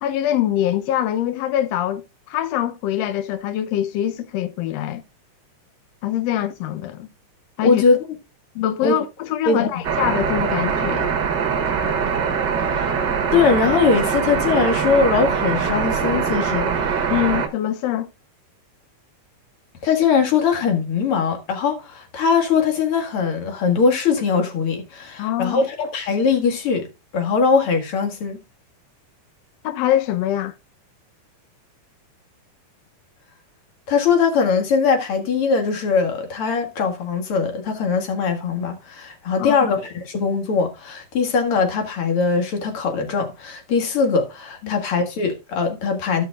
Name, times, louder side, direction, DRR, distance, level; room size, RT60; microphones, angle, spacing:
voice 1, 0.0-2.0 2.3-5.0 6.0-7.1 7.6-7.8 8.5-11.1 17.1-18.1 25.2-25.6 29.6-30.5 39.4-39.6 44.6-44.7, left 12 dB, 90° left, 1.4 m, -23 dB
voice 2, 7.6-8.0 8.8-9.0 9.5-9.8 12.6-12.9 13.3-17.1 19.8-26.9 27.1-28.4 33.9-46.2, left 5 dB, 50° left, 2.2 m, -21 dB
sound 1, 9.8-17.5, right 6 dB, 55° right, 1.3 m, -22 dB
15.5 x 5.8 x 2.3 m
omnidirectional pair, 3.8 m